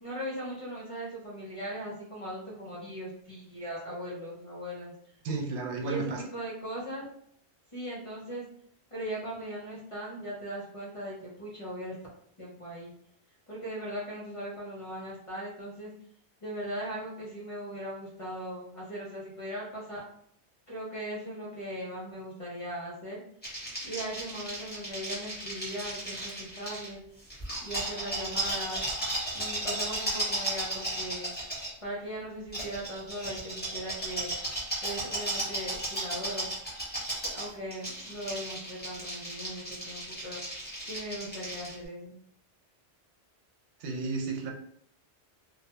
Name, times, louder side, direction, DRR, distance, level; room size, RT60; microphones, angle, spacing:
voice 1, 0.0-4.9 5.8-7.0 7.7-8.4 8.9-12.0 12.4-12.9 13.5-15.9 16.4-20.0 20.7-23.2 23.8-27.0 27.6-28.8 29.3-31.3 31.8-34.3 34.8-36.5 37.2-40.4 40.8-42.1, right 1 dB, 35° left, -5 dB, 0.6 m, -39 dB
voice 2, 5.2-6.2 43.8-44.5, right 3 dB, 80° right, 1 dB, 0.9 m, -32 dB
sound 1, 23.4-26.9 27.3-31.7 32.5-41.7, right 1 dB, 10° left, 0.9 m, -35 dB
2.2 x 2.2 x 2.9 m, 0.65 s
omnidirectional pair, 1.1 m